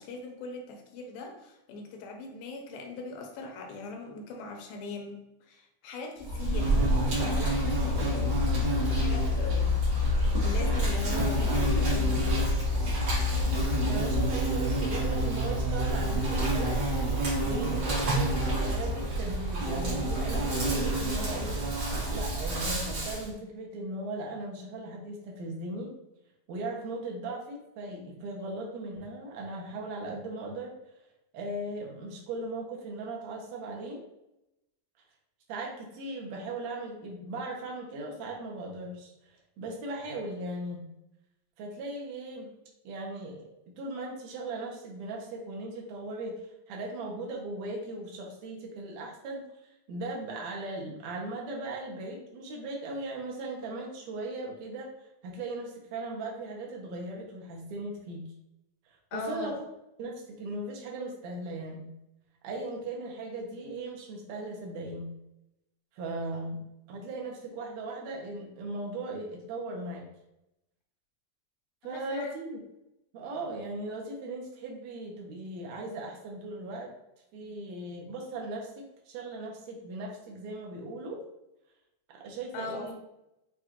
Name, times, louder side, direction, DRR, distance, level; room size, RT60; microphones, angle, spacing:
voice 1, 0.0-8.5 8.9-12.6 59.1-59.5 71.9-72.4 82.5-82.9, left 3 dB, 85° left, 3 dB, 2.4 m, -40 dB
Insect, 6.2-23.3, equal, 50° right, 1.4 m, -27 dB
voice 2, 13.8-16.7 17.4-21.6 22.1-25.9 26.5-30.7 31.3-34.0 35.5-39.1 39.6-40.8 41.6-42.5 42.8-58.2 59.1-59.5 60.0-61.9 62.4-65.1 65.9-66.6 66.9-70.0 71.8-72.6 73.1-76.9 77.3-81.2 82.1-82.9, right 2 dB, 70° right, -1 dB, 1.8 m, -38 dB
6.9 x 2.5 x 2.9 m, 0.87 s
omnidirectional pair, 4.0 m